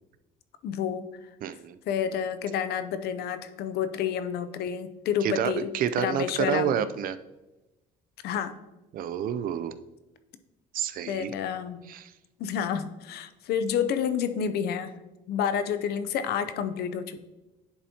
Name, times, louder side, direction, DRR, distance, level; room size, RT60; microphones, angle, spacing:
voice 1, 0.6-1.1 1.9-6.8 8.2-8.6 11.1-11.8 12.4-15.0 15.3-17.2, left 8 dB, 70° left, 11 dB, 0.5 m, -29 dB
voice 2, 1.4-1.8 5.2-7.2 8.9-9.8 10.7-11.3 11.9-12.1, right 9 dB, 55° right, 13 dB, 0.4 m, -29 dB
10.5 x 4.1 x 2.8 m, 1.1 s
cardioid pair, 110°, 17 cm